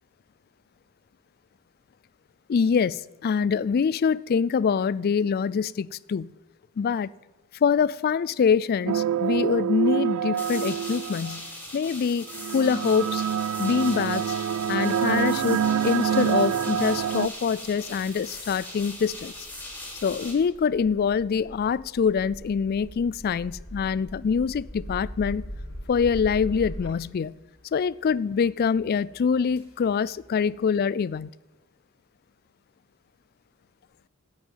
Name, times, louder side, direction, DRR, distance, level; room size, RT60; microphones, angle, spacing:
voice 1, 2.5-6.3 6.8-7.1 7.6-11.5 11.7-12.3 12.5-13.2 13.6-14.2 14.7-19.3 20.0-25.4 25.9-27.3 27.7-31.3, left 6 dB, 45° left, 0.3 m, -24 dB
sound 1, 8.9-11.4 12.3-17.3, right 8 dB, 75° right, 0.3 m, -26 dB
sound 2, 10.4-20.3, left 1 dB, 5° left, 3.0 m, -40 dB
sound 3, 14.4-30.6, equal, 75° left, 3.3 m, -43 dB
9.2 x 8.9 x 9.2 m
head